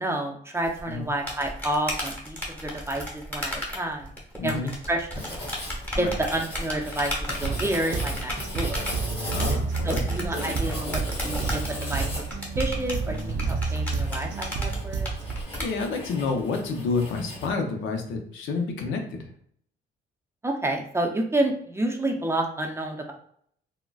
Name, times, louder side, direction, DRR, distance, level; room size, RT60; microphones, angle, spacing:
voice 1, 0.0-4.1 4.4-5.4 6.0-7.1 7.4-8.8 9.8-12.1 12.6-15.1 20.4-23.1, right 1 dB, 15° right, 2 dB, 0.5 m, -29 dB
sound 1, 0.6-15.7, left 1 dB, 10° left, 0.9 m, -34 dB
voice 2, 4.4-4.7 6.0-6.2 9.3-10.1 15.5-19.3, left 4 dB, 80° left, 4 dB, 0.6 m, -29 dB
Writing, 5.1-17.5, left 1 dB, 30° left, 1.4 m, -38 dB
sound 2, 7.4-15.4, right 4 dB, 70° right, 0.5 m, -30 dB
3.7 x 2.1 x 2.3 m, 0.64 s
cardioid pair, 90°, 20 cm